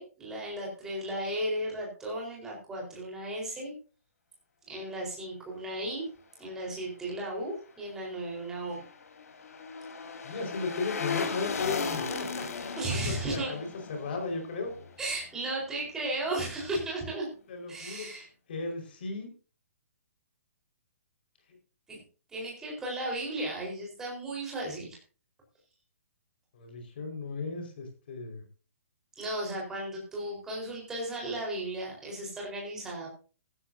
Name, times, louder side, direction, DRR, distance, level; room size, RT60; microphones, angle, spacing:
voice 1, 0.0-3.7 4.7-6.0 6.4-8.8 12.8-13.5 15.0-17.3 17.7-18.3 21.9-22.0 22.3-25.0 29.2-33.1, right 1 dB, 5° right, -2 dB, 4.3 m, -35 dB
sound 1, 8.3-15.5 15.8-15.9, left 5 dB, 85° left, 3.7 m, -37 dB
voice 2, 10.2-12.5 12.9-14.7 17.5-18.1 18.5-19.3 26.5-28.4, left 4 dB, 40° left, 4 dB, 4.8 m, -35 dB
15.5 x 14.5 x 2.7 m, 0.37 s
hypercardioid pair, 180°, 8 cm